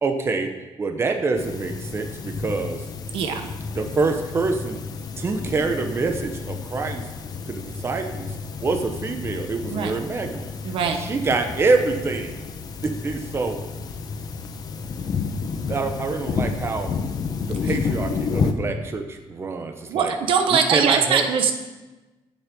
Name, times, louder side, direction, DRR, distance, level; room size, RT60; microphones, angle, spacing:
voice 1, 0.0-2.8 3.7-4.8 5.2-7.0 7.5-8.3 8.6-10.5 10.8-12.5 12.8-13.6 15.7-17.0 17.5-20.2 20.5-21.3, right 3 dB, 25° right, 5 dB, 0.9 m, -26 dB
sound 1, 1.4-18.5, left 5 dB, 45° left, 1.0 m, -30 dB
voice 2, 10.6-11.0 19.9-21.5, right 6 dB, 75° right, 6 dB, 1.1 m, -21 dB
8.9 x 7.4 x 7.0 m, 1.1 s
cardioid pair, 140°, 9 cm